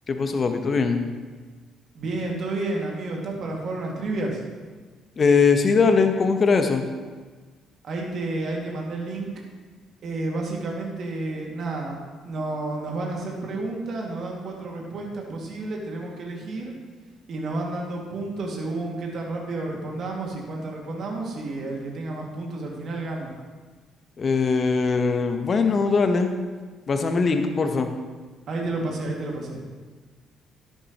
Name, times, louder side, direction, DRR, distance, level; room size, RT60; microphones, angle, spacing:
voice 1, 0.1-1.0 5.2-6.8 24.2-26.3 26.9-27.9, left 4 dB, 40° left, 6 dB, 1.2 m, -21 dB
voice 2, 1.9-4.4 7.8-9.3 10.0-12.0 12.2-16.7 17.3-23.3 28.5-29.6, right 2 dB, 50° right, 0 dB, 2.5 m, -31 dB
13.0 x 11.5 x 3.2 m, 1.4 s
figure-of-eight pair, 45°, 0 cm